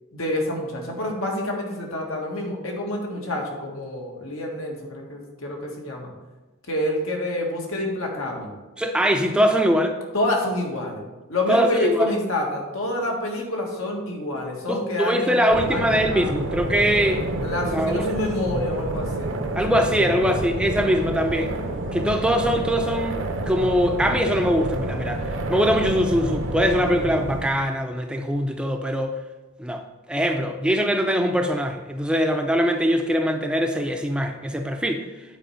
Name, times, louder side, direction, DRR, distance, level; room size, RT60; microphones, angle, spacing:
voice 1, 0.1-6.1 6.7-8.5 10.1-16.3 17.4-19.4 19.7-19.8 20.1-20.4, left 1 dB, 85° left, 0 dB, 1.8 m, -28 dB
voice 2, 8.8-10.0 11.5-12.1 14.7-17.2 17.7-18.1 19.5-21.5 21.9-25.2 25.5-29.1 29.6-29.8 30.1-35.0, equal, 5° right, 4 dB, 0.4 m, -22 dB
sound 1, 15.5-27.5, right 2 dB, 65° right, 0.8 m, -28 dB
9.3 x 4.4 x 5.6 m, 1.2 s
head